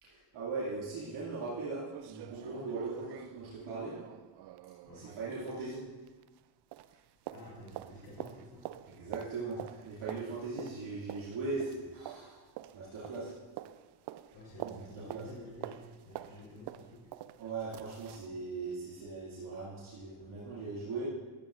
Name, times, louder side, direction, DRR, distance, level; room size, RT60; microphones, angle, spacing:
voice 1, 0.0-3.9 4.9-5.8 8.9-12.4 12.7-13.3 14.6-14.8 15.1-15.2 17.4-21.1, right 3 dB, 70° right, -7 dB, 2.4 m, -39 dB
sound 1, 1.1-1.2 1.5-1.6 1.9-6.5 6.7-18.3 18.7-18.8, right 14 dB, 55° right, 0.5 m, -47 dB
voice 2, 7.3-8.7 14.3-17.1, left 1 dB, 55° left, -4 dB, 3.3 m, -50 dB
13.5 x 8.8 x 2.5 m, 1.3 s
supercardioid pair, 75°, 49 cm